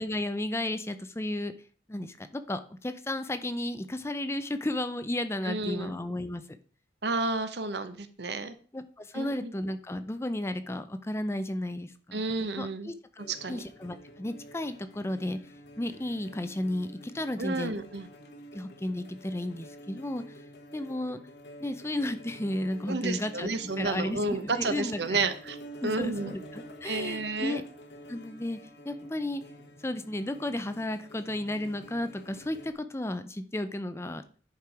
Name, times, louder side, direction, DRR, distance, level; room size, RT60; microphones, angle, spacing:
voice 1, 0.0-1.5 1.9-6.4 8.7-12.2 12.6-15.4 15.8-17.7 18.5-20.2 20.7-21.2 21.6-23.5 23.8-25.2 25.8-27.6 28.1-28.6 28.8-29.4 29.8-34.2, left 1 dB, 15° left, 10 dB, 0.5 m, -33 dB
voice 2, 5.4-5.9 7.0-8.5 9.1-9.5 12.1-12.9 13.3-13.6 17.4-18.1 22.9-25.6 25.8-26.3 26.8-27.6, right 3 dB, 70° right, 10 dB, 1.0 m, -31 dB
sound 1, 13.2-32.7, equal, 70° left, 1.2 m, -49 dB
10.5 x 4.6 x 4.8 m, 0.42 s
head